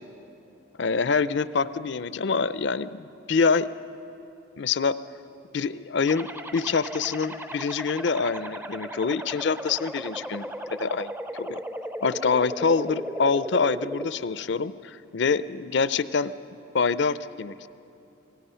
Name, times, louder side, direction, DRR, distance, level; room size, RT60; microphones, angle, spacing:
voice 1, 0.8-3.7 4.6-5.0 5.5-11.6 12.0-16.3 16.7-17.7, left 5 dB, 60° left, 15 dB, 0.5 m, -26 dB
sound 1, 6.1-14.1, right 1 dB, 10° right, 0.5 m, -36 dB
26.0 x 18.5 x 5.6 m, 2.9 s
head